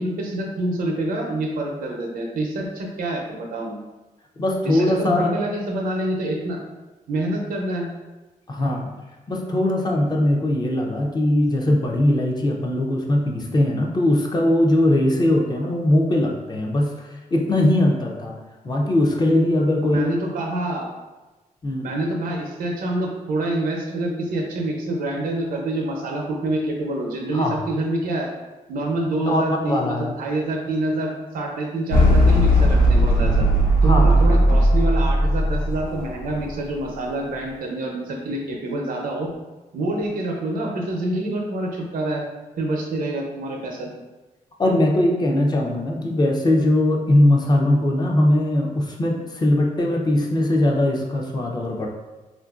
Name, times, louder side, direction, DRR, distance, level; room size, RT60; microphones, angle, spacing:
voice 1, 0.0-3.8 4.6-6.6 7.1-7.9 19.8-20.9 21.8-28.3 28.7-33.5 33.8-39.3 39.7-42.2 42.6-43.9, right 1 dB, 80° right, 0 dB, 0.6 m, -26 dB
voice 2, 4.4-5.3 8.5-8.9 9.3-18.4 18.6-20.1 21.6-21.9 27.3-27.6 29.3-30.1 33.8-34.2 44.6-51.9, left 1 dB, 30° left, 0 dB, 0.5 m, -20 dB
sound 1, 31.9-36.4, equal, 80° left, 0.5 m, -17 dB
3.6 x 2.5 x 2.3 m, 1.1 s
cardioid pair, 110°, 15 cm